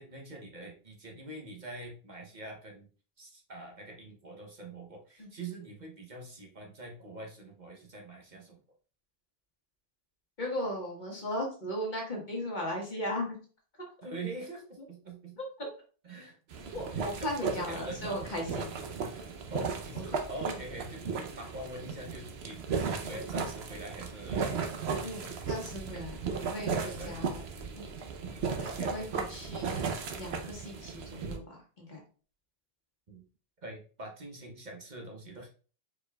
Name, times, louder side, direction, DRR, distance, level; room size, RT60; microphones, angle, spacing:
voice 1, 0.0-2.9 3.2-8.6 14.0-15.4 16.0-16.7 16.9-18.2 19.5-24.6 25.9-26.0 26.7-27.2 28.7-29.1 33.1-33.3 33.6-35.5, right 2 dB, 50° right, 1 dB, 0.9 m, -44 dB
voice 2, 10.4-13.4 15.4-15.7 16.7-18.7 20.1-20.6 23.0-23.2 25.0-27.4 27.8-27.9 28.6-29.8 30.2-32.0, equal, 50° left, 0 dB, 1.4 m, -37 dB
sound 1, 16.5-31.4, right 5 dB, 80° right, 1.0 m, -36 dB
4.7 x 4.4 x 2.3 m, 0.39 s
omnidirectional pair, 1.1 m